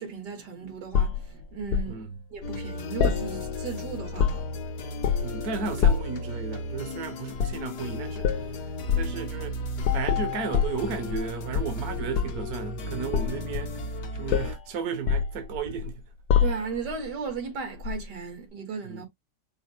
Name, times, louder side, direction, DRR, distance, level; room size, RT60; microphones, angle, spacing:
voice 1, 0.0-2.0 2.3-4.4 16.4-19.1, right 6 dB, 85° right, 2.4 m, -35 dB
sound 1, 0.9-1.9 3.0-3.7 4.0-4.6 5.0-5.4 5.8-6.2 7.3-7.7 8.2-8.5 8.9-9.1 9.8-11.3 11.5-12.5 13.1-14.0 14.3-14.6 15.1-15.9 16.3-16.9 17.8-18.0, left 7 dB, 75° left, 1.2 m, -26 dB
voice 2, 1.9-2.2 5.2-9.6 9.9-16.0 18.9-19.1, right 6 dB, 65° right, 1.3 m, -34 dB
sound 2, 2.4-14.6, left 1 dB, 90° left, 1.6 m, -36 dB
5.6 x 2.0 x 4.2 m
omnidirectional pair, 1.7 m